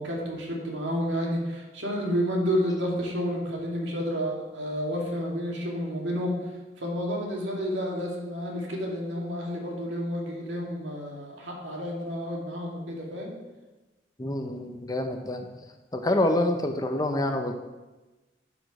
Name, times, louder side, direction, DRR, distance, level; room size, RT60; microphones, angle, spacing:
voice 1, 0.0-6.4 6.8-13.3, equal, 75° right, -1 dB, 2.2 m, -30 dB
voice 2, 14.2-15.5 15.9-17.5, left 1 dB, 20° left, 5 dB, 0.6 m, -27 dB
12.0 x 5.1 x 4.8 m, 1.2 s
head